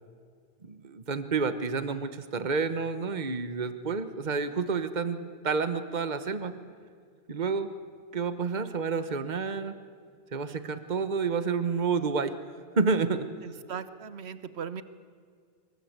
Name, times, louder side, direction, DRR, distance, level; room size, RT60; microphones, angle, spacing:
voice 1, 0.6-6.5 7.3-7.7 8.1-9.8 10.3-12.3 12.8-13.3, right 4 dB, 45° right, 11 dB, 1.3 m, -29 dB
voice 2, 13.4-14.8, right 7 dB, 85° right, 12 dB, 1.2 m, -38 dB
26.0 x 23.5 x 8.2 m, 2.1 s
omnidirectional pair, 1.1 m